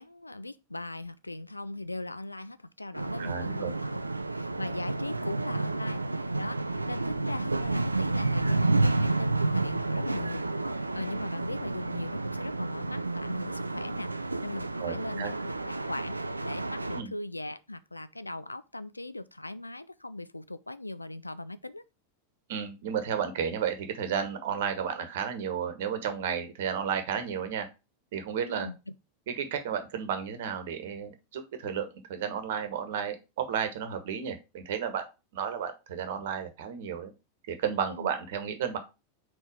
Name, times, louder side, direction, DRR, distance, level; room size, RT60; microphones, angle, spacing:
voice 1, 0.0-4.0 4.3-14.1 14.4-21.8 28.4-29.0 37.9-38.1, left 2 dB, 85° left, 0.4 m, -39 dB
sound 1, 2.9-17.0, right 2 dB, 80° right, 0.4 m, -30 dB
voice 2, 3.2-3.7 14.8-15.3 16.9-17.1 22.5-27.7 28.1-28.7 29.3-35.0 35.3-37.1 37.5-38.8, right 7 dB, 55° right, 1.2 m, -32 dB
4.6 x 4.3 x 4.9 m
figure-of-eight pair, 90°, 0 cm